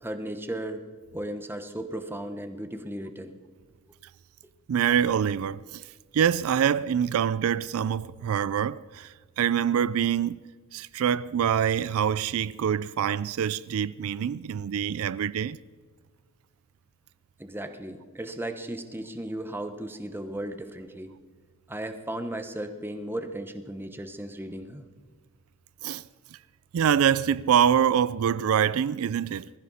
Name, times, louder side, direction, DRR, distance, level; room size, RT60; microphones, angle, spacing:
voice 1, 0.0-0.8 1.1-3.4 17.4-21.1 21.7-24.9, right 1 dB, 10° right, 1.0 m, -35 dB
voice 2, 4.7-15.6 25.8-26.0 26.3-26.4 26.7-29.5, right 8 dB, 70° right, 0.3 m, -25 dB
20.5 x 15.0 x 4.2 m
head